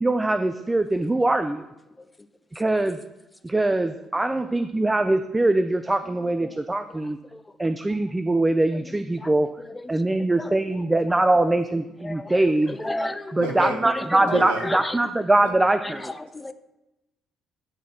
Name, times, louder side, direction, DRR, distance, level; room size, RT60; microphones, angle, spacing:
voice 1, 0.0-1.7 2.5-3.0 3.4-7.2 7.6-9.5 9.9-12.8 13.3-16.1, right 2 dB, 20° right, 10 dB, 0.4 m, -22 dB
voice 2, 9.7-10.6 12.0-12.4 12.7-15.1 15.8-16.5, left 2 dB, 15° left, 11 dB, 0.6 m, -33 dB
voice 3, 13.4-13.9 14.3-14.7 15.4-15.5, right 4 dB, 90° right, 4 dB, 1.0 m, -31 dB
10.5 x 4.1 x 4.4 m, 0.97 s
hypercardioid pair, 55°, 0 cm